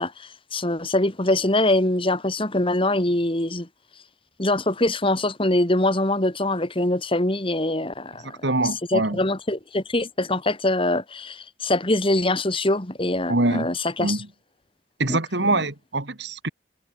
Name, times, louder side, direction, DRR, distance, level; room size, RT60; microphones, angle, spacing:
voice 1, 0.0-3.7 4.4-8.4 8.9-14.2 15.1-15.2 15.5-15.6, left 1 dB, 25° left, 2.4 m, -23 dB
voice 2, 8.2-9.2 13.3-13.7 14.0-14.3 15.0-16.5, right 2 dB, 60° right, 2.4 m, -24 dB
head